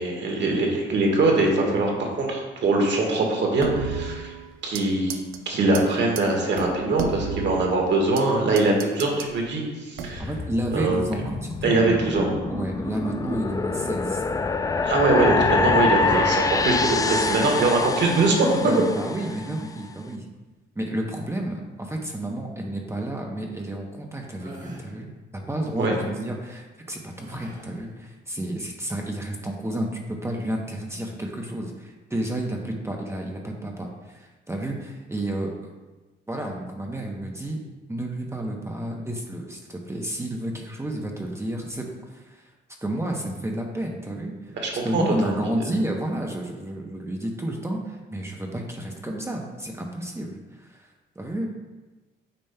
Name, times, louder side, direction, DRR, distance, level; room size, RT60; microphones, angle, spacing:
voice 1, 0.0-4.3 4.6-5.2 5.4-10.3 10.7-11.0 11.6-12.3 14.8-18.5 25.8-25.9 44.6-45.4, right 2 dB, 65° right, 0 dB, 1.6 m, -22 dB
sound 1, 3.6-4.8 5.1-5.4 5.7-5.8 6.2-6.3 6.6-8.3 8.6-9.3 10.0-10.4, right 6 dB, 90° right, 0.6 m, -32 dB
sound 2, 10.2-19.5, left 4 dB, 20° left, 0.3 m, -26 dB
voice 2, 10.2-11.9 12.5-14.3 16.0-16.2 18.6-20.3 20.8-35.7 36.3-37.6 37.9-42.5 42.8-44.5 44.8-51.6, right 1 dB, 15° right, 0 dB, 0.8 m, -31 dB
sound 3, 24.4-24.9 27.1-27.8, equal, 40° right, 1.5 m, -42 dB
8.9 x 5.1 x 2.2 m, 1.2 s
cardioid pair, 90°, 20 cm